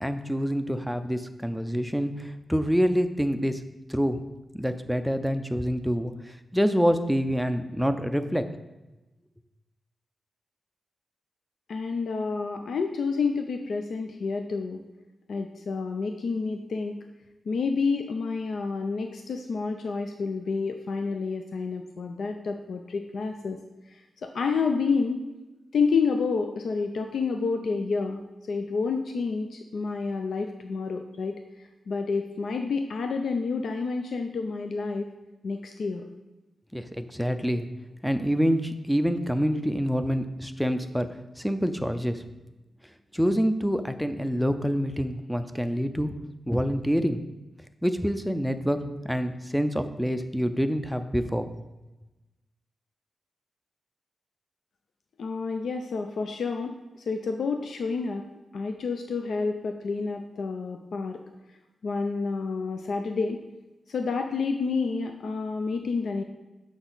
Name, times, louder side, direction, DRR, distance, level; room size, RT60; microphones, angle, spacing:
voice 1, 0.0-3.6 3.9-4.2 4.5-8.4 36.7-37.7 38.0-41.1 41.4-42.2 43.1-46.1 46.5-47.2 47.8-51.5, equal, ahead, 8 dB, 0.4 m, -26 dB
voice 2, 11.7-14.8 15.3-17.0 17.5-23.6 23.9-25.3 25.7-35.1 35.4-36.1 55.2-58.3 58.5-61.2 61.8-63.4 63.9-66.2, left 4 dB, 70° left, 5 dB, 0.5 m, -29 dB
6.3 x 5.8 x 3.9 m, 1.1 s
wide cardioid pair, 120°, 0 cm